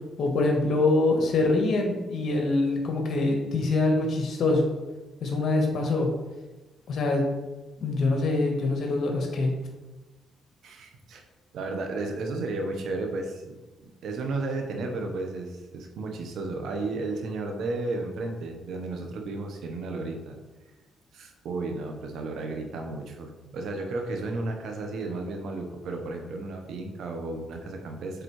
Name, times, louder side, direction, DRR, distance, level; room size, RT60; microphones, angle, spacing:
voice 1, 0.2-4.7 5.2-6.1 6.9-7.3 7.8-9.5, left 2 dB, 60° left, 2 dB, 1.4 m, -24 dB
voice 2, 10.6-11.2 11.5-20.4 21.1-28.2, right 2 dB, 75° right, 3 dB, 1.0 m, -33 dB
7.9 x 3.8 x 3.2 m, 1.1 s
cardioid pair, 90°, 0 cm